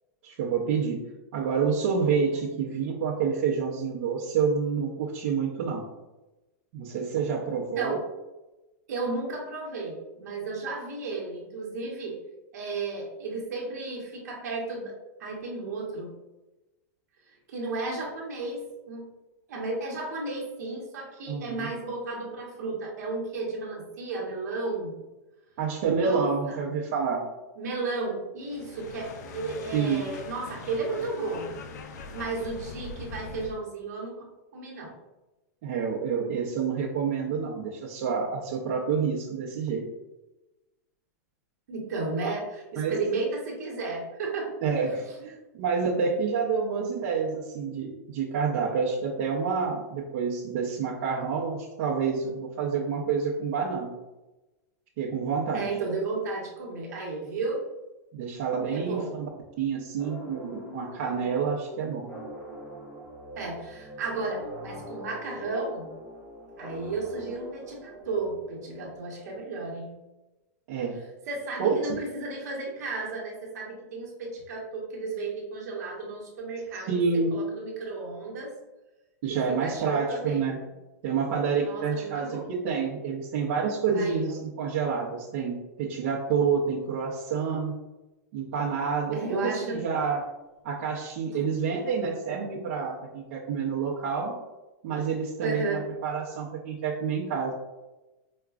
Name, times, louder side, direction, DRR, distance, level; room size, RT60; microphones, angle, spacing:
voice 1, 0.2-1.0 1.3-5.9 6.7-8.0 21.3-21.7 25.6-27.2 29.7-30.1 35.6-39.8 42.2-42.3 42.8-42.9 44.6-54.0 55.0-55.7 58.1-59.3 59.6-62.1 70.7-71.0 71.6-71.7 76.9-77.4 79.2-80.6 81.0-87.7 88.3-90.2 90.6-94.4 94.8-97.5, right 6 dB, 50° right, -6 dB, 0.6 m, -28 dB
voice 2, 8.9-12.2 12.5-16.1 17.3-19.1 19.5-25.0 26.0-26.7 27.6-31.6 32.1-34.3 34.5-34.9 41.7-42.4 42.7-44.5 44.9-45.1 55.5-57.6 58.7-59.1 63.4-66.0 66.6-69.9 71.3-76.9 77.3-78.5 79.3-80.6 81.6-82.5 83.9-84.3 89.1-89.8 95.4-95.8, right 3 dB, 70° right, -2 dB, 1.0 m, -33 dB
sound 1, 28.4-33.6, left 4 dB, 80° left, 0.4 m, -42 dB
sound 2, 60.0-69.4, equal, 5° left, 0.6 m, -43 dB
4.8 x 2.2 x 2.3 m, 1.0 s
supercardioid pair, 160°, 9 cm